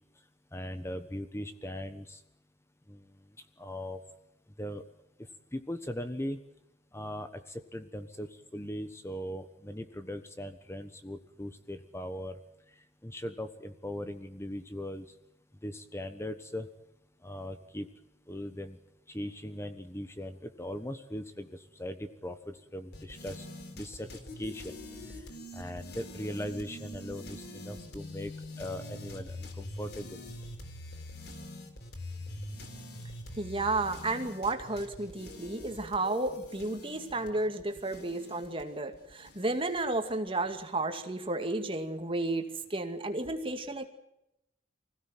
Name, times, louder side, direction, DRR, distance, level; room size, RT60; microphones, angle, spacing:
voice 1, 0.5-2.2 2.9-3.0 3.6-4.0 4.6-4.8 5.5-6.4 6.9-12.4 13.0-15.1 15.6-16.7 17.2-17.9 18.3-18.8 19.1-23.5 23.7-24.1 24.4-24.8 25.1-25.2 25.5-28.3 28.6-30.2, left 1 dB, 15° left, 9 dB, 1.2 m, -39 dB
sound 1, 22.9-40.1, left 1 dB, 65° left, 3.7 m, -45 dB
voice 2, 33.4-42.4 42.7-43.9, right 2 dB, 30° right, 6 dB, 2.3 m, -32 dB
24.5 x 16.5 x 9.2 m, 0.86 s
head